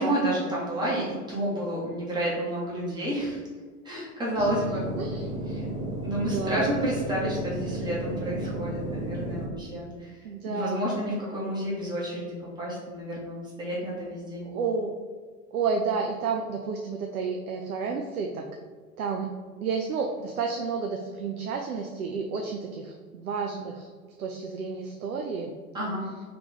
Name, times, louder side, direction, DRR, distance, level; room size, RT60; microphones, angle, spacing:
voice 1, 0.0-3.4 3.8-4.8 5.5-5.7 6.0-14.5 25.7-26.1, right 1 dB, 10° right, -6 dB, 1.3 m, -30 dB
sound 1, 4.4-9.5, right 1 dB, 75° left, 1.2 m, -33 dB
voice 2, 6.2-6.7 10.2-10.9 14.4-14.9 15.5-18.5 19.0-19.3 19.6-23.9 24.2-25.5, right 5 dB, 65° right, 2 dB, 0.6 m, -31 dB
3.2 x 3.0 x 3.9 m, 1.5 s
figure-of-eight pair, 90°, 47 cm